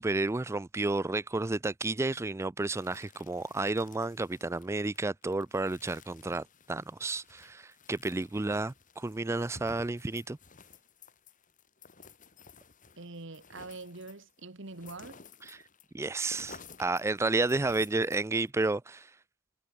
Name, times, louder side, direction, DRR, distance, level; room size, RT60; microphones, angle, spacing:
voice 1, 0.0-10.4 15.4-15.6 15.9-19.1, right 2 dB, 15° right, 0.3 m, -31 dB
sound 1, 2.8-18.5, left 4 dB, 40° left, 5.3 m, -54 dB
voice 2, 13.0-15.2, right 3 dB, 65° right, 1.8 m, -44 dB
head